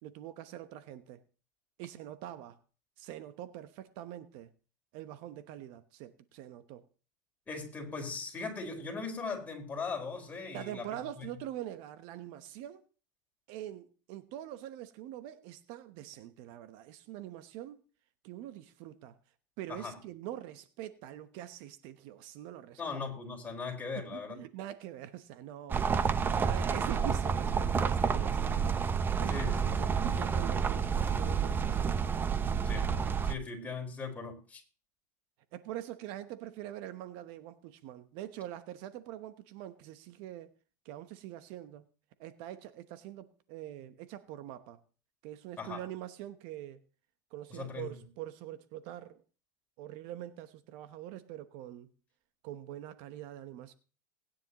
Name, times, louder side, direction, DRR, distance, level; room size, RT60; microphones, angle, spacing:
voice 1, 0.0-1.2 1.8-2.6 3.0-4.5 4.9-6.8 10.5-12.8 13.5-17.8 18.2-19.2 19.6-22.8 23.9-28.5 29.2-30.9 31.1-31.9 35.5-40.5 40.8-41.9 42.2-44.8 45.2-46.8 47.3-49.2 49.8-51.9 52.4-53.7, right 12 dB, 60° right, 1.0 m, -44 dB
voice 2, 7.5-10.9 11.2-11.3 19.7-20.0 22.8-24.4 29.3-29.7 32.6-32.9 33.2-34.6 45.6-45.8 47.5-47.9, left 4 dB, 15° left, 4.7 m, -39 dB
sound 1, 25.7-33.3, right 6 dB, 20° right, 0.7 m, -29 dB
19.5 x 10.0 x 3.0 m
supercardioid pair, 115°, 10 cm